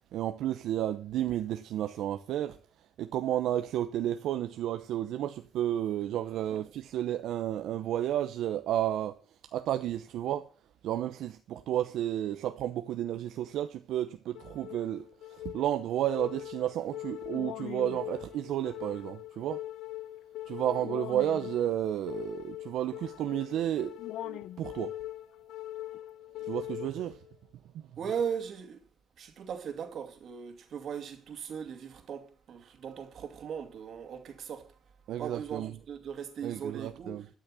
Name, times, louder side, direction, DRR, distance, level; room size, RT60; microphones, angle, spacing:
voice 1, 0.1-2.6 3.0-9.2 9.5-10.5 10.8-19.6 20.5-23.9 24.2-24.9 26.4-27.2 35.1-35.8 36.4-37.3, right 12 dB, 85° right, 0.8 m, -32 dB
sound 1, 14.3-27.3, left 14 dB, 85° left, 0.6 m, -41 dB
voice 2, 28.0-28.8 29.2-34.7 35.2-37.3, right 7 dB, 65° right, 2.5 m, -38 dB
12.5 x 6.4 x 7.6 m
cardioid pair, 90°, 0 cm